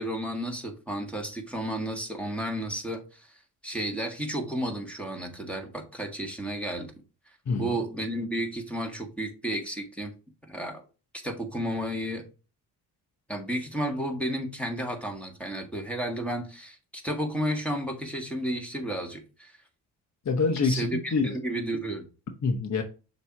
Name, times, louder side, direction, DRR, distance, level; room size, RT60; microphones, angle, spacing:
voice 1, 0.0-3.3 3.6-6.9 7.6-10.1 10.5-10.8 11.2-12.2 13.3-19.6 20.6-22.1, right 1 dB, 5° left, 1.8 m, -32 dB
voice 2, 7.5-7.8 20.2-21.4 22.4-22.8, left 4 dB, 40° left, 1.0 m, -26 dB
6.6 x 3.0 x 4.8 m
supercardioid pair, 60°, 42 cm